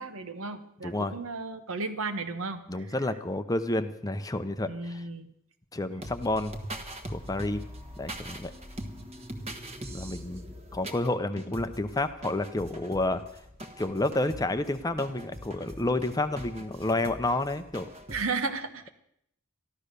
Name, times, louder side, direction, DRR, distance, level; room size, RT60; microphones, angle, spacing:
voice 1, 0.0-3.0 4.7-5.3 18.1-18.9, right 4 dB, 75° right, 9 dB, 1.2 m, -34 dB
voice 2, 0.8-1.1 2.7-5.0 5.7-6.5 7.1-7.6 8.0-8.5 9.9-10.4 10.7-13.2 13.8-17.9, left 2 dB, 15° left, 10 dB, 0.7 m, -30 dB
sound 1, 6.0-18.3, equal, 30° right, 1.3 m, -42 dB
14.0 x 12.0 x 6.7 m, 0.75 s
head